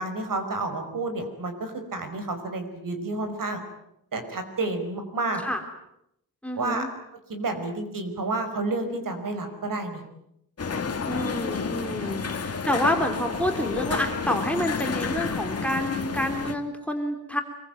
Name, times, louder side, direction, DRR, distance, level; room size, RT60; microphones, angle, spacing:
voice 1, 0.0-3.6 4.1-5.4 6.6-6.9 7.3-10.0 12.0-12.2, right 2 dB, 60° right, 7 dB, 5.2 m, -30 dB
voice 2, 6.4-6.9 11.1-17.4, left 1 dB, 5° left, 3 dB, 3.3 m, -28 dB
sound 1, 10.6-16.5, left 5 dB, 40° left, 2.3 m, -30 dB
25.5 x 23.0 x 9.2 m, 0.79 s
wide cardioid pair, 160°, 36 cm